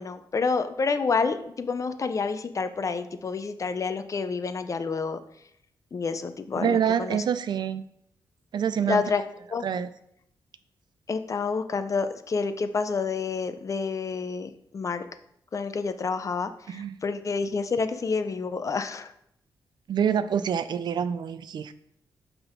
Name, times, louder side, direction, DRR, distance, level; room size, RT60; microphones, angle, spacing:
voice 1, 0.0-5.2 5.9-7.2 8.9-9.2 9.5-9.6 11.1-15.0 15.5-19.1, left 4 dB, 40° left, 10 dB, 0.5 m, -28 dB
voice 2, 6.6-7.8 8.5-9.0 9.6-9.9 16.7-16.9 19.9-21.7, right 8 dB, 65° right, 12 dB, 0.4 m, -26 dB
5.8 x 3.6 x 5.4 m, 0.74 s
cardioid pair, 80°, 8 cm